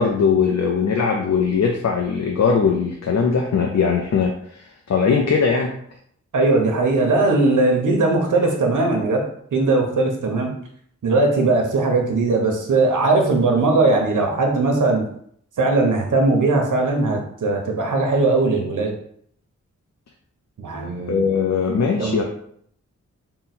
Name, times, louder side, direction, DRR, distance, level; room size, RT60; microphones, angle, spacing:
voice 1, 0.0-5.7 21.1-22.2, left 5 dB, 65° left, 1 dB, 0.5 m, -20 dB
voice 2, 6.3-9.2 9.5-10.5 11.0-15.0 15.6-18.9 20.6-21.2 22.0-22.2, right 3 dB, 85° right, 1 dB, 0.9 m, -19 dB
3.8 x 2.2 x 4.2 m, 0.65 s
wide cardioid pair, 65°, 30 cm